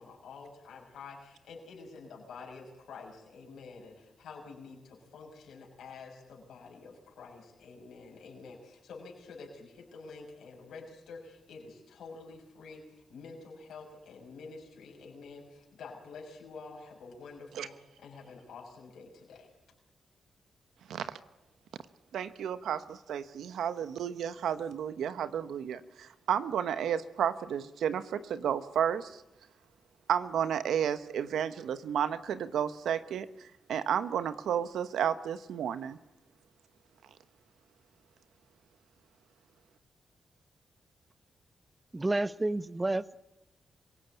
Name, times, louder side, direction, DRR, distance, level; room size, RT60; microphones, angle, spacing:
voice 1, 0.0-19.5, left 4 dB, 80° left, 6.1 m, -48 dB
voice 2, 22.1-29.2 30.1-33.3 33.7-36.0, right 9 dB, 85° right, 1.1 m, -32 dB
voice 3, 41.9-43.1, right 2 dB, 20° right, 1.0 m, -30 dB
25.5 x 17.5 x 9.2 m
cardioid pair, 60°, 0 cm